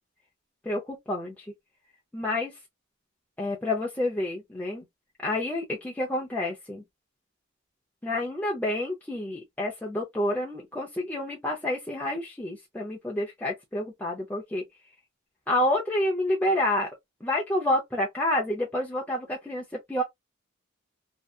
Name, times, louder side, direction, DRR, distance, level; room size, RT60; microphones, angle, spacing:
voice 1, 0.6-1.5 2.1-2.6 3.4-4.9 5.2-6.8 8.0-14.6 15.5-16.9 17.2-20.0, left 1 dB, 10° left, 0.5 m, -29 dB
2.7 x 2.3 x 2.3 m
head